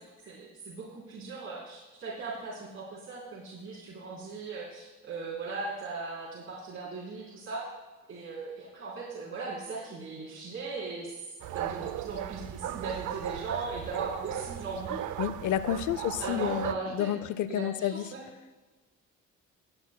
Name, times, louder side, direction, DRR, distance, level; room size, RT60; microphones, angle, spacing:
voice 1, 0.3-7.6 8.1-11.2 11.5-15.0 16.2-17.1 17.5-17.6 17.9-18.2, right 4 dB, 45° right, -7 dB, 3.8 m, -38 dB
sound 1, 11.4-16.7, right 11 dB, 85° right, 0.6 m, -36 dB
voice 2, 15.2-18.0, left 11 dB, 75° left, 15 dB, 0.6 m, -30 dB
19.0 x 9.6 x 2.3 m, 1.2 s
cardioid pair, 90°, 30 cm